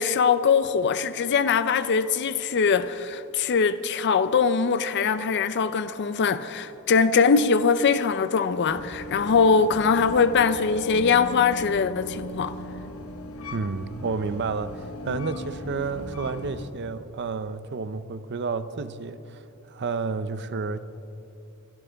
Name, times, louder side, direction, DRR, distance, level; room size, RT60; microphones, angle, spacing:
voice 1, 0.0-12.5, left 5 dB, 55° left, 0.5 m, -22 dB
sound 1, 8.7-16.7, left 1 dB, 70° left, 1.0 m, -37 dB
voice 2, 13.5-20.8, right 4 dB, 55° right, 0.6 m, -31 dB
27.5 x 12.5 x 3.4 m
head